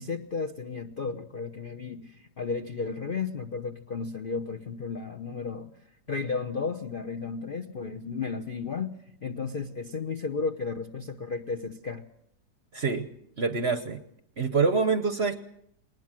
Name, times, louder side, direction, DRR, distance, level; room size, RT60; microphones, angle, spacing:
voice 1, 0.0-5.7 6.1-12.0, left 5 dB, 40° left, 7 dB, 0.8 m, -33 dB
voice 2, 12.7-13.1 13.4-14.0 14.4-15.4, right 4 dB, 45° right, 10 dB, 1.0 m, -25 dB
20.5 x 19.5 x 7.5 m, 0.73 s
omnidirectional pair, 2.0 m